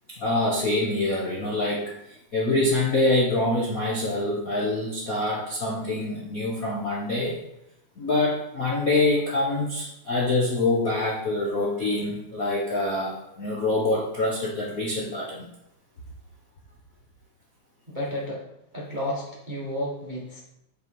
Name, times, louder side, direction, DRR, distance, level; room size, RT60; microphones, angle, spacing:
voice 1, 0.1-7.3 8.0-15.5, left 2 dB, 55° left, -3 dB, 0.9 m, -25 dB
voice 2, 17.9-18.4 18.7-20.4, left 1 dB, 30° right, -4 dB, 0.9 m, -31 dB
8.5 x 5.0 x 5.3 m, 0.84 s
omnidirectional pair, 3.4 m